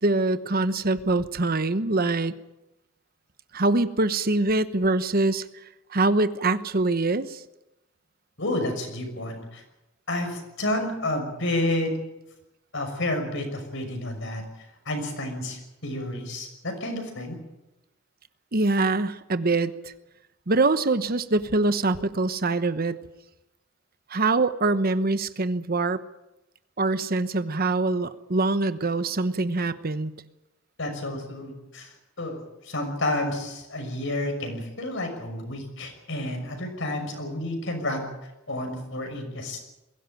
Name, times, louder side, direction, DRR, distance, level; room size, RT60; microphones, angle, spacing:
voice 1, 0.0-2.3 3.5-5.5 5.9-7.4 18.5-19.9 20.5-23.0 24.1-26.0 26.8-30.1, right 2 dB, 45° right, 12 dB, 1.0 m, -24 dB
voice 2, 8.4-9.6 10.1-11.9 12.7-14.4 14.9-17.4 30.8-31.9 32.2-38.1 38.5-39.6, left 1 dB, 65° left, 5 dB, 6.0 m, -30 dB
22.0 x 17.0 x 9.1 m, 0.95 s
head